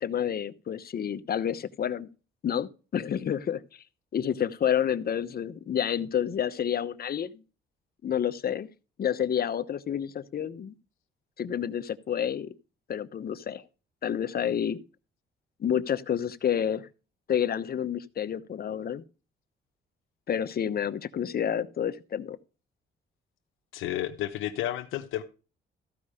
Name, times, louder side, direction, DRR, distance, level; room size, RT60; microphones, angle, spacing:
voice 1, 0.0-2.1 2.4-3.8 4.1-7.3 8.0-8.7 9.0-10.7 11.4-12.5 12.9-13.6 14.0-14.8 15.6-16.9 17.3-19.0 20.3-22.4, left 9 dB, 50° left, 0.9 m, -29 dB
voice 2, 23.7-25.2, left 13 dB, 90° left, 1.0 m, -31 dB
15.0 x 5.4 x 4.9 m
cardioid pair, 90°, 20 cm